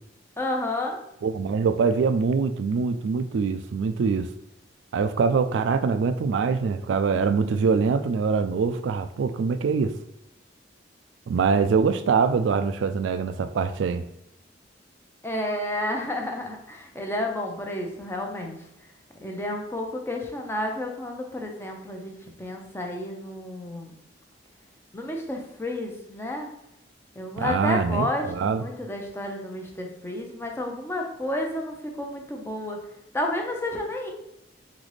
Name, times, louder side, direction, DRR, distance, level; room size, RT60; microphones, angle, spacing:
voice 1, 0.4-1.0 15.2-18.6 19.2-22.1 22.4-23.9 24.9-26.5 27.2-32.8 33.1-34.1, left 1 dB, 15° left, 0.7 m, -31 dB
voice 2, 1.2-4.3 4.9-9.9 11.3-14.0 27.4-28.6, right 5 dB, 80° right, 0.3 m, -24 dB
4.0 x 3.9 x 3.2 m
head